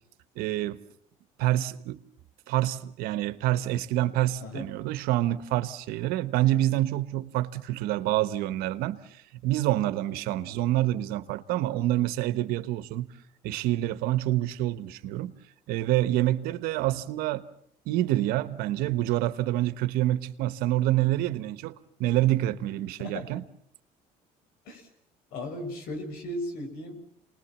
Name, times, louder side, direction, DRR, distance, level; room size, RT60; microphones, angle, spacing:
voice 1, 0.4-0.8 1.4-2.0 2.5-13.1 13.4-15.4 15.7-17.5 17.8-21.7 22.0-23.4, right 14 dB, 80° right, 1.2 m, -27 dB
voice 2, 4.4-4.7 23.0-23.3 24.6-24.9 25.3-27.1, left 1 dB, 80° left, 5.8 m, -36 dB
28.5 x 20.0 x 7.2 m
cardioid pair, 110°, 15 cm